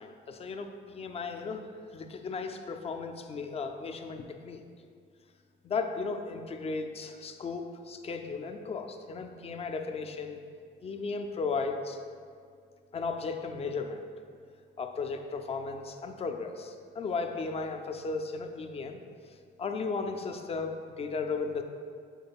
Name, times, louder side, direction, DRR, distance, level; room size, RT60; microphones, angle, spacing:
voice 1, 0.0-1.7 1.9-4.6 5.6-10.4 10.8-12.0 12.9-14.0 14.8-19.0 19.6-21.6, left 4 dB, 30° left, 6 dB, 0.3 m, -35 dB
5.3 x 3.8 x 2.3 m, 2.2 s
cardioid pair, 90°, 20 cm